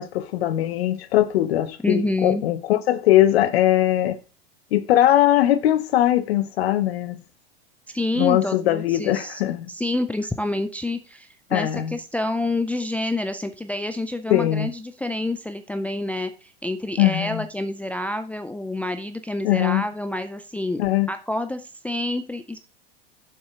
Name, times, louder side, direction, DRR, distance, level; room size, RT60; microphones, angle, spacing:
voice 1, 0.0-4.2 4.7-7.2 8.1-9.7 11.5-12.0 14.3-14.7 17.0-17.5 19.4-19.8 20.8-21.1, left 13 dB, 70° left, 1.0 m, -20 dB
voice 2, 1.8-2.4 7.9-9.4 9.7-20.8 21.1-22.6, left 2 dB, 5° left, 0.4 m, -28 dB
7.4 x 5.8 x 3.6 m
hypercardioid pair, 105°, 31 cm